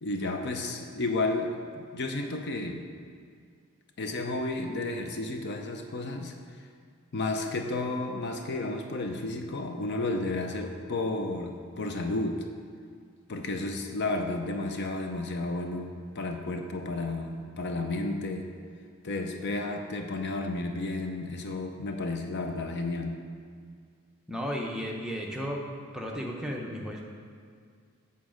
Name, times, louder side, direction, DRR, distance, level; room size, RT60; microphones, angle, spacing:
voice 1, 0.0-2.8 4.0-6.3 7.1-12.4 13.3-18.5 19.0-23.1, left 2 dB, 50° left, 4 dB, 0.6 m, -32 dB
voice 2, 24.3-25.6 25.9-27.0, equal, 5° right, -1 dB, 0.7 m, -34 dB
8.3 x 4.1 x 6.3 m, 2.1 s
head